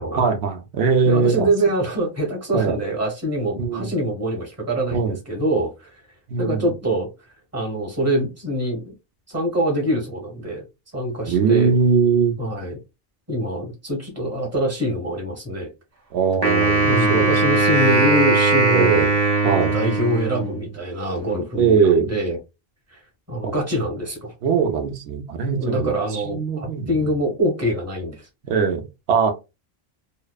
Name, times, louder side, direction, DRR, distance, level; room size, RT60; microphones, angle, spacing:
voice 1, 0.2-1.5 2.5-2.8 3.6-3.9 4.9-5.2 6.3-6.6 11.3-12.4 16.1-17.3 18.7-19.1 19.4-19.8 21.6-22.1 23.4-23.5 24.4-27.1 28.4-29.3, right 5 dB, 85° right, 0.8 m, -21 dB
voice 2, 1.0-5.9 6.4-7.1 7.5-8.9 9.3-10.7 10.9-11.7 12.4-12.8 13.3-15.7 16.8-19.0 19.4-22.4 22.9-23.0 23.3-24.3 25.5-28.3, right 1 dB, 15° right, 0.9 m, -24 dB
Wind instrument woodwind instrument, 16.4-20.7, right 3 dB, 40° right, 0.8 m, -19 dB
2.7 x 2.1 x 2.2 m
omnidirectional pair, 1.0 m